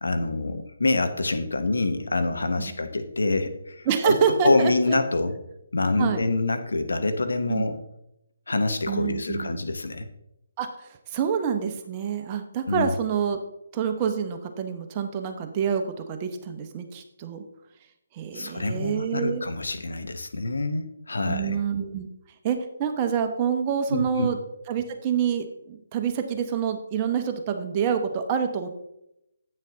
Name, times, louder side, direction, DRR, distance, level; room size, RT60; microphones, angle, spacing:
voice 1, 0.0-4.2 4.4-5.3 5.7-7.8 8.5-10.1 12.7-12.9 18.3-21.6 23.9-24.3, left 2 dB, 75° left, 8 dB, 1.0 m, -26 dB
voice 2, 3.9-5.0 6.0-6.3 7.5-7.7 8.9-9.5 10.6-13.4 13.7-17.4 18.1-19.4 21.2-22.1 22.4-24.4 24.7-28.7, right 7 dB, 25° right, 5 dB, 0.9 m, -27 dB
8.6 x 6.4 x 3.8 m, 0.83 s
figure-of-eight pair, 145°, 0 cm